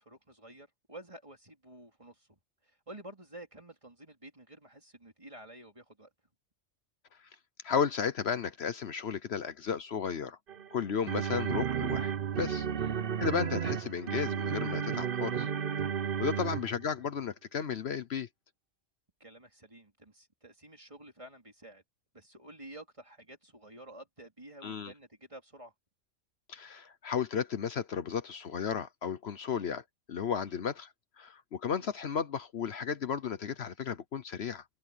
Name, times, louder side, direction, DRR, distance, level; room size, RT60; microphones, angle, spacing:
voice 1, 0.0-2.3 2.6-6.1 10.9-11.1 12.7-12.9 16.4-16.6 19.2-21.8 22.1-25.7 29.5-29.7 30.5-30.6 31.7-31.9, right 1 dB, 25° right, 3.4 m, -51 dB
voice 2, 7.6-10.4 10.7-12.7 13.2-15.5 16.2-18.3 24.6-24.9 26.5-29.8 30.1-34.6, left 7 dB, 65° left, 1.1 m, -34 dB
sound 1, 10.5-16.9, right 8 dB, 55° right, 0.9 m, -33 dB
open air
omnidirectional pair, 1.2 m